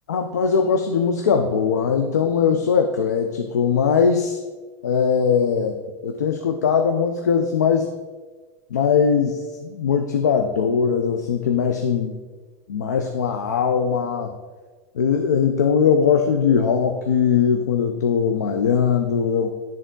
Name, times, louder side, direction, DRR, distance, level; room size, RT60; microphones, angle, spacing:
voice 1, 0.1-4.4 4.8-7.9 8.7-12.2 12.7-14.3 15.0-19.5, left 6 dB, 90° left, 4 dB, 0.5 m, -20 dB
10.0 x 3.6 x 3.7 m, 1.3 s
hypercardioid pair, 95°, 9 cm